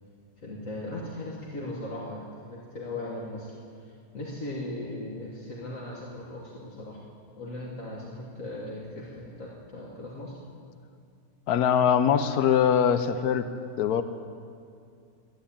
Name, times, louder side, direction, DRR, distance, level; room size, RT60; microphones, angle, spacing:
voice 1, 0.4-3.5 4.1-7.0 7.4-10.3, left 1 dB, 55° left, -4 dB, 1.9 m, -38 dB
voice 2, 11.5-13.5 13.8-14.0, left 8 dB, 80° left, 11 dB, 1.2 m, -22 dB
12.5 x 10.0 x 8.6 m, 2.4 s
omnidirectional pair, 1.6 m